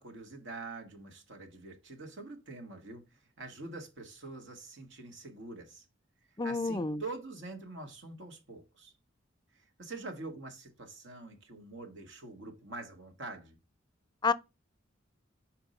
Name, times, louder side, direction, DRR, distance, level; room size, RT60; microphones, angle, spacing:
voice 1, 0.0-5.8 6.4-8.9 9.5-13.6, right 3 dB, 65° right, 1.6 m, -45 dB
voice 2, 6.4-7.0 14.2-14.3, left 4 dB, 20° left, 0.5 m, -29 dB
5.8 x 4.5 x 5.4 m
head